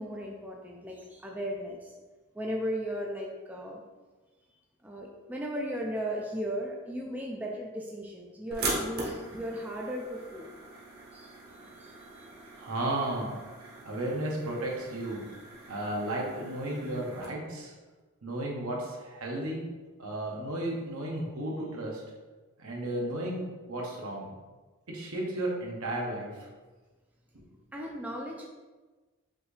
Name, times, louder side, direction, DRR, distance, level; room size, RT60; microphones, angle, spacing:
voice 1, 0.0-1.9 2.3-3.8 4.8-10.5 11.1-11.3 11.6-12.5 27.7-28.5, equal, 5° right, -1 dB, 0.3 m, -36 dB
sound 1, 8.5-17.3, right 2 dB, 45° right, 1.0 m, -40 dB
voice 2, 12.6-13.4 13.8-15.2 15.7-17.7 18.2-19.7 20.0-22.0 22.6-24.3 24.9-26.5, right 1 dB, 75° right, -2 dB, 1.0 m, -33 dB
5.6 x 2.7 x 3.2 m, 1.3 s
head